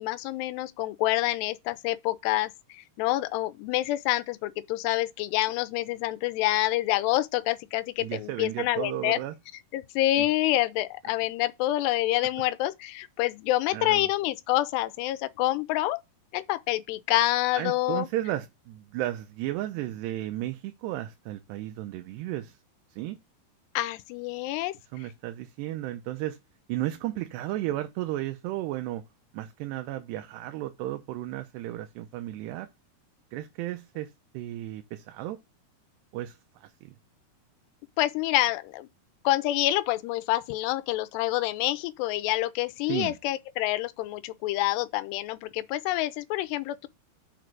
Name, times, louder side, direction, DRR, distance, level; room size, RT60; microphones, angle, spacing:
voice 1, 0.0-9.2 9.7-16.0 16.3-18.1 23.8-24.7 38.0-38.9 39.2-46.9, left 16 dB, 90° left, 2.8 m, -27 dB
voice 2, 8.0-9.4 10.2-10.3 13.7-14.1 17.5-22.6 22.9-23.2 24.9-26.4 26.7-29.0 29.3-32.7 33.3-35.4 36.1-37.0 42.9-43.2, right 14 dB, 90° right, 3.0 m, -34 dB
6.6 x 5.0 x 5.9 m
omnidirectional pair, 4.7 m